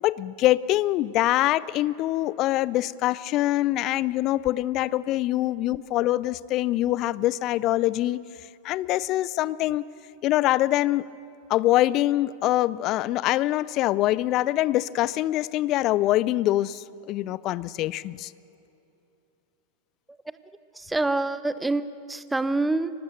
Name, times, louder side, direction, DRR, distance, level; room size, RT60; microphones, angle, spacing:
voice 1, 0.0-8.2 8.6-9.9 10.2-11.1 11.5-18.3, left 15 dB, 35° left, 20 dB, 0.5 m, -24 dB
voice 2, 20.8-22.9, right 2 dB, 5° right, 15 dB, 0.7 m, -26 dB
24.5 x 19.0 x 6.6 m, 2.7 s
figure-of-eight pair, 90°, 0 cm